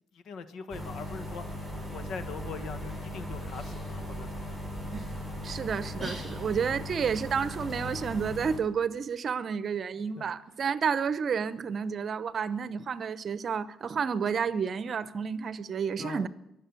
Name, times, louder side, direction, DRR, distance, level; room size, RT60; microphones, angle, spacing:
voice 1, 0.1-4.6 6.3-6.4 10.2-10.3 16.0-16.3, left 5 dB, 70° left, 1.3 m, -42 dB
sound 1, 0.7-8.6, left 1 dB, 15° left, 7.8 m, -38 dB
voice 2, 5.4-16.3, right 6 dB, 50° right, 0.8 m, -30 dB
22.5 x 7.6 x 8.4 m
cardioid pair, 90°, 0 cm